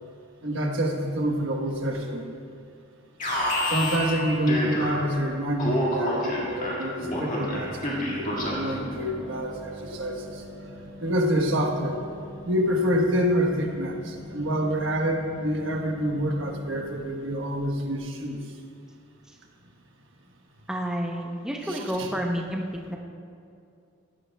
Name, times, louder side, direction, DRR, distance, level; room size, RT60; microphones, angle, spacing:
voice 1, 0.4-2.3 3.6-10.4 11.0-12.0 12.4-18.4 21.6-22.1, equal, 70° right, 2 dB, 1.3 m, -27 dB
Alarm, 3.2-5.2 5.6-8.8, equal, 35° left, 2.0 m, -28 dB
sound 1, 7.1-18.6, equal, 20° right, 3.2 m, -44 dB
voice 2, 20.7-22.6 22.9-23.0, equal, 5° right, 0 dB, 0.8 m, -29 dB
17.0 x 12.5 x 2.3 m, 2.4 s
head